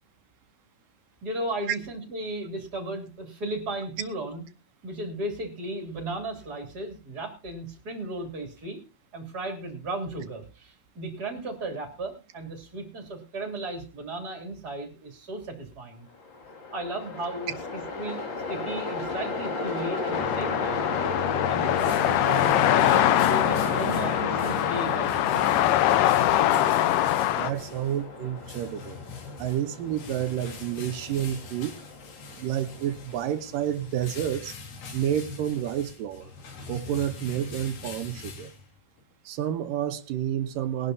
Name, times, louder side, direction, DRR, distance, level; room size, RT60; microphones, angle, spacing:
voice 1, 1.2-4.4 4.8-8.8 9.1-16.1 16.7-18.2 18.5-20.9 21.5-25.6, right 2 dB, 25° right, 3.2 m, -35 dB
Train, 16.2-33.4, left 3 dB, 40° left, 1.9 m, -34 dB
sound 1, 20.1-27.5, left 13 dB, 80° left, 2.7 m, -23 dB
sound 2, 21.2-39.0, left 4 dB, 60° left, 3.8 m, -43 dB
voice 2, 26.5-26.8 27.3-29.0 29.4-31.8 32.3-34.5 34.9-36.3 36.7-38.5 39.3-40.9, right 11 dB, 70° right, 2.4 m, -30 dB
21.0 x 11.5 x 2.7 m
omnidirectional pair, 4.5 m